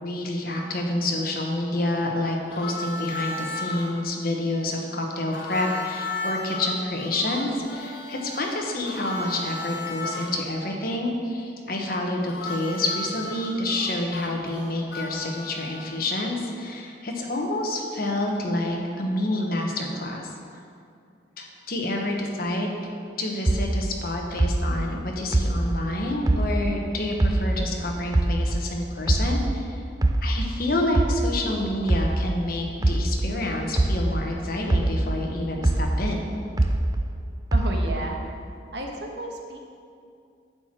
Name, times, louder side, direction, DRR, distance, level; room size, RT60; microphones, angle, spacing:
voice 1, 0.0-20.3 21.4-22.7 23.2-29.8 30.2-36.3, left 1 dB, 55° left, 1 dB, 1.3 m, -28 dB
Harmonica, 2.5-3.9 5.3-10.3 12.2-16.2, left 2 dB, 70° left, 1.5 m, -35 dB
sound 1, 23.5-26.9 27.2-29.7 30.0-34.4 34.7-37.2 37.5-38.2, right 1 dB, 20° right, 0.4 m, -23 dB
voice 2, 37.5-38.2 38.7-39.7, right 1 dB, 70° right, 1 dB, 1.3 m, -33 dB
10.5 x 4.6 x 7.6 m, 2.4 s
head